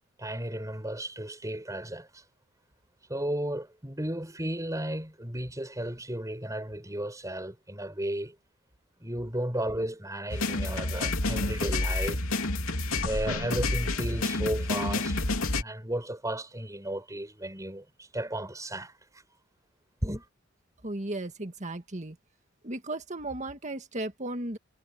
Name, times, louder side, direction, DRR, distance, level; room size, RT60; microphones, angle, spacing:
voice 1, 0.2-2.2 3.1-8.3 9.0-12.2 13.0-15.3 15.5-18.9 20.0-20.3, right 1 dB, 15° right, 6.8 m, -34 dB
sound 1, 10.3-15.6, left 2 dB, 85° left, 3.2 m, -29 dB
voice 2, 20.8-22.2 22.6-24.6, right 2 dB, 35° right, 1.9 m, -35 dB
head